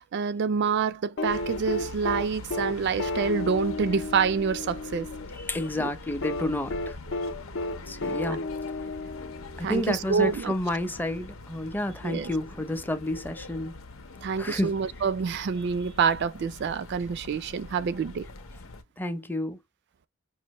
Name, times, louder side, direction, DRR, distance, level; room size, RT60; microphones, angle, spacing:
voice 1, 0.0-5.1 5.8-5.9 9.6-10.5 12.0-12.3 14.2-18.3, right 6 dB, 55° right, 0.4 m, -27 dB
sound 1, 1.2-5.3 6.2-9.8 11.2-11.3, left 2 dB, 65° left, 0.6 m, -32 dB
sound 2, 1.3-18.8, left 2 dB, 90° left, 0.9 m, -43 dB
voice 2, 5.4-7.0 7.9-8.4 9.6-13.8 14.4-14.7 19.0-19.6, left 1 dB, 10° left, 0.5 m, -30 dB
5.4 x 2.5 x 3.0 m
head